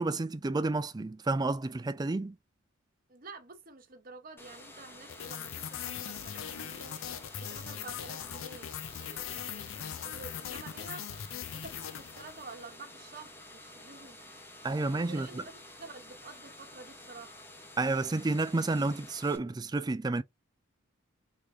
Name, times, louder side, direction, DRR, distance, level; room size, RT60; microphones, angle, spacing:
voice 1, 0.0-2.4 14.6-15.3 17.8-20.2, right 2 dB, 20° right, 0.4 m, -30 dB
voice 2, 3.1-7.0 7.4-11.2 11.5-14.2 14.8-15.5 15.8-17.4, right 3 dB, 45° right, 1.0 m, -49 dB
sound 1, 4.4-19.4, left 1 dB, 10° left, 1.0 m, -51 dB
sound 2, 5.1-12.7, left 9 dB, 75° left, 0.5 m, -40 dB
3.6 x 3.2 x 3.9 m
head